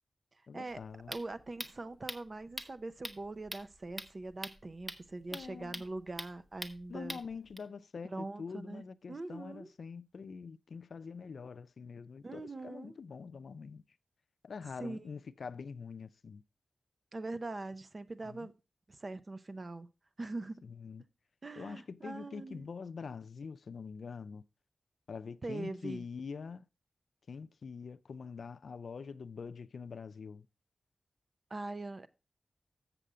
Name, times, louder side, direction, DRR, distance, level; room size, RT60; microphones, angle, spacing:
voice 1, 0.5-1.1 5.3-5.8 6.9-13.8 14.4-16.4 18.3-18.5 20.6-21.0 21.6-24.4 25.1-26.6 27.3-30.5, left 5 dB, 80° left, 0.4 m, -45 dB
sound 1, 0.7-7.6, right 1 dB, 15° right, 1.0 m, -45 dB
voice 2, 1.1-7.2 8.0-9.7 12.2-13.0 14.8-15.1 17.1-18.5 18.9-19.9 20.2-20.6 21.4-22.7 25.4-26.0 31.5-32.1, right 2 dB, 45° right, 0.7 m, -42 dB
7.5 x 6.8 x 4.9 m
wide cardioid pair, 85°, 0 cm